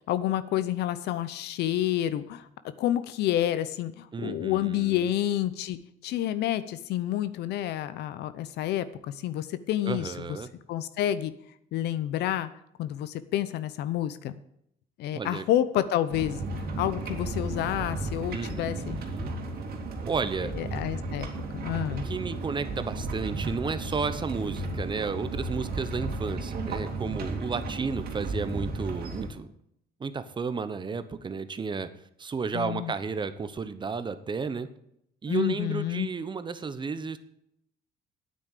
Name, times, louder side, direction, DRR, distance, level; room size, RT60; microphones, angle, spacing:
voice 1, 0.1-2.5 2.8-5.8 6.0-10.1 10.7-11.3 11.7-12.5 12.8-14.4 15.0-16.4 16.8-19.0 20.6-21.3 21.5-22.1 32.5-32.9 35.3-36.1, left 12 dB, 80° left, 14 dB, 0.8 m, -29 dB
voice 2, 4.1-5.1 9.8-10.5 15.1-15.5 18.3-19.3 20.0-20.5 22.0-29.5 30.0-31.9 32.2-34.7 35.2-37.2, right 5 dB, 30° right, 12 dB, 1.0 m, -32 dB
sound 1, 16.1-29.3, right 2 dB, 65° right, 2.6 m, -34 dB
9.2 x 8.7 x 8.4 m, 0.74 s
cardioid pair, 110°, 17 cm